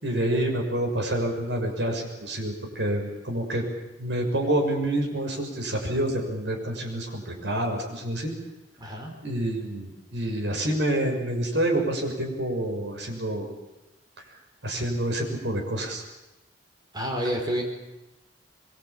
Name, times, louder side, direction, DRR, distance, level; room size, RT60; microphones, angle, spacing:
voice 1, 0.0-3.6 4.0-8.3 9.2-13.5 14.6-16.0, right 1 dB, 80° right, 1 dB, 6.9 m, -27 dB
voice 2, 8.8-9.1 16.9-17.6, equal, 25° right, 2 dB, 5.1 m, -28 dB
24.0 x 23.5 x 8.8 m, 1.0 s
head